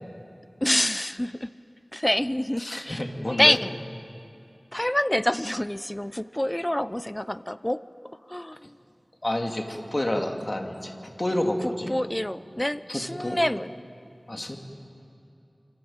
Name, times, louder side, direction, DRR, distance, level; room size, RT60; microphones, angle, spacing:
voice 1, 0.6-1.5 1.9-3.0 3.4-3.7 4.7-7.8 8.3-8.7 11.6-13.7, left 1 dB, 20° left, 14 dB, 0.7 m, -26 dB
voice 2, 2.6-3.6 9.2-11.9 12.9-13.4 14.3-14.6, left 1 dB, 40° left, 3 dB, 2.8 m, -29 dB
26.0 x 25.0 x 9.0 m, 2.6 s
wide cardioid pair, 55°, 0 cm